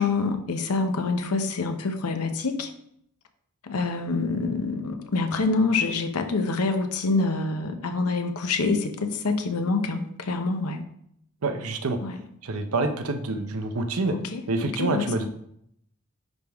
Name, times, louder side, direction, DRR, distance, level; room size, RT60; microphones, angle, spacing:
voice 1, 0.0-2.7 3.6-10.8 12.0-12.2 14.1-15.3, left 3 dB, 85° left, 7 dB, 0.8 m, -26 dB
voice 2, 11.4-12.0 12.4-14.1 14.5-15.3, right 2 dB, 70° right, 7 dB, 0.7 m, -27 dB
10.5 x 3.5 x 3.5 m, 0.72 s
head